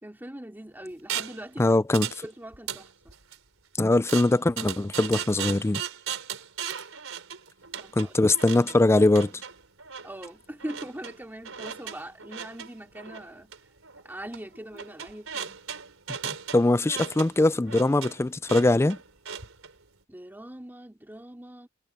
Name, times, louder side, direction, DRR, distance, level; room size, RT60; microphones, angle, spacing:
voice 1, 0.0-2.9 7.8-8.1 10.0-13.5 14.0-15.6 20.1-21.7, right 1 dB, 10° right, 2.8 m, -41 dB
sound 1, 1.1-1.4 1.9-2.2 2.5-3.4 4.1-19.7, right 8 dB, 85° right, 3.9 m, -37 dB
voice 2, 1.6-2.1 3.8-5.8 8.0-9.3 16.1-16.2 16.5-19.0, left 2 dB, 15° left, 0.3 m, -22 dB
head